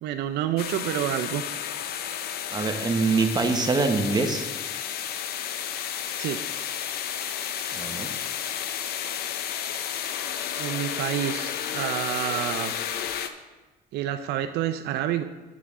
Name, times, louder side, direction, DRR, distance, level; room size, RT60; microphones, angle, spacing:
voice 1, 0.0-1.4 2.1-2.2 6.2-6.4 10.6-12.7 13.9-15.2, right 11 dB, 80° right, 7 dB, 0.5 m, -28 dB
sound 1, 0.6-13.3, left 9 dB, 65° left, 0.6 m, -32 dB
voice 2, 2.5-4.5 7.7-8.1, right 4 dB, 25° right, 4 dB, 1.0 m, -24 dB
8.3 x 8.1 x 3.6 m, 1.2 s
cardioid pair, 110°, 17 cm